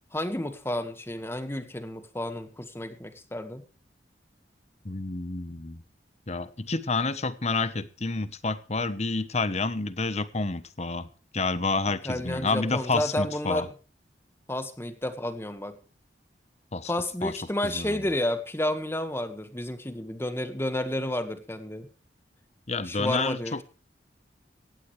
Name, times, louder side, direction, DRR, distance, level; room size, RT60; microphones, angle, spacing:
voice 1, 0.1-3.6 12.0-13.7 14.5-15.8 16.9-21.9 22.9-23.6, left 1 dB, 15° left, 9 dB, 1.7 m, -31 dB
voice 2, 4.8-5.8 6.3-11.1 11.3-13.7 16.7-16.9 17.2-17.4 17.6-18.1 22.7-23.6, left 3 dB, 40° left, 14 dB, 1.1 m, -29 dB
18.0 x 16.0 x 3.4 m, 0.34 s
head